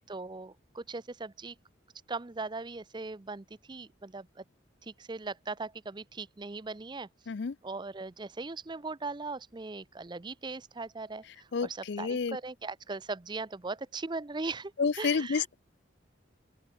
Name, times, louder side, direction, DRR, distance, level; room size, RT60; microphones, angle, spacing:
voice 1, 0.1-1.6 2.1-4.4 4.8-7.1 7.6-14.7 15.0-15.5, right 3 dB, 25° right, 0.5 m, -39 dB
voice 2, 11.5-12.4 14.8-15.5, left 5 dB, 60° left, 0.5 m, -30 dB
open air
head